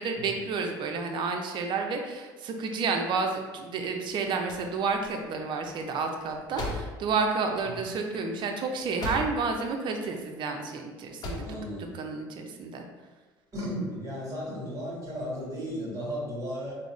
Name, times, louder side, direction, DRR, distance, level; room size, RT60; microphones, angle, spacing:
voice 1, 0.0-11.5 11.9-12.8, right 4 dB, 55° right, 4 dB, 0.5 m, -30 dB
sound 1, 4.3-9.6 9.9-10.7 11.0-11.6, left 2 dB, 40° left, 0.8 m, -38 dB
voice 2, 11.4-12.0 13.5-16.8, equal, 35° right, -4 dB, 1.4 m, -35 dB
3.6 x 2.0 x 3.1 m, 1.3 s
hypercardioid pair, 70°, 10 cm